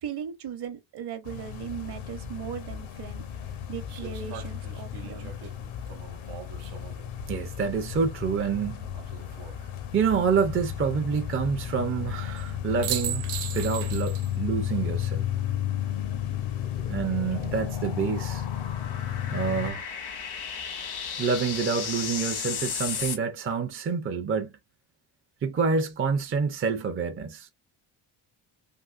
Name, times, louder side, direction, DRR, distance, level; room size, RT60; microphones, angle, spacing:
voice 1, 0.0-3.2 3.7-5.3, right 8 dB, 50° right, 0.9 m, -37 dB
sound 1, 1.3-19.7, left 11 dB, 70° left, 0.8 m, -33 dB
sound 2, 2.4-2.5 3.9-7.1 8.9-9.6 12.4-12.5 12.8-14.4 14.7-14.8 17.1-17.6, right 11 dB, 80° right, 0.8 m, -38 dB
voice 2, 7.3-8.9 9.9-15.3 16.9-18.5 19.3-19.9 21.2-24.5 25.4-27.5, right 5 dB, 25° right, 0.5 m, -27 dB
sound 3, 15.7-23.2, left 7 dB, 90° left, 1.7 m, -36 dB
3.7 x 2.6 x 2.4 m
cardioid pair, 120°, 50 cm